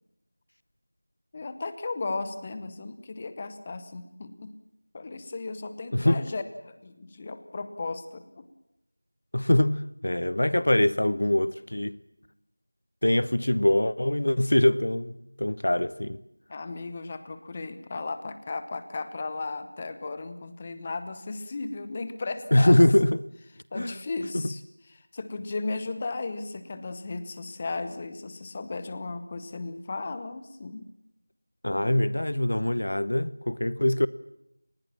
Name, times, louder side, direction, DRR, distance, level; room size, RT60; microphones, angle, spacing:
voice 1, 1.3-4.5 4.9-8.4 16.5-22.8 23.7-24.6 24.9-30.9, left 3 dB, 15° left, 1.0 m, -35 dB
voice 2, 9.3-12.0 13.0-16.2 22.5-23.2 23.7-24.0 24.3-24.5 31.6-34.1, left 1 dB, 50° left, 0.9 m, -23 dB
26.0 x 20.0 x 7.4 m
figure-of-eight pair, 175°, 0 cm